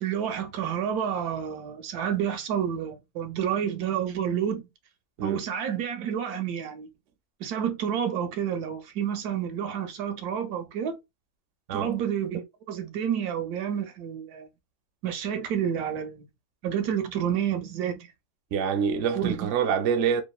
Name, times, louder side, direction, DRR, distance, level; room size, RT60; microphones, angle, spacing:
voice 1, 0.0-4.6 5.2-6.9 7.4-11.0 11.7-14.5 15.0-16.3 16.6-18.1 19.1-19.5, right 9 dB, 85° right, 1.1 m, -29 dB
voice 2, 18.5-20.2, right 7 dB, 65° right, 0.8 m, -26 dB
2.9 x 2.4 x 2.3 m
omnidirectional pair, 1.6 m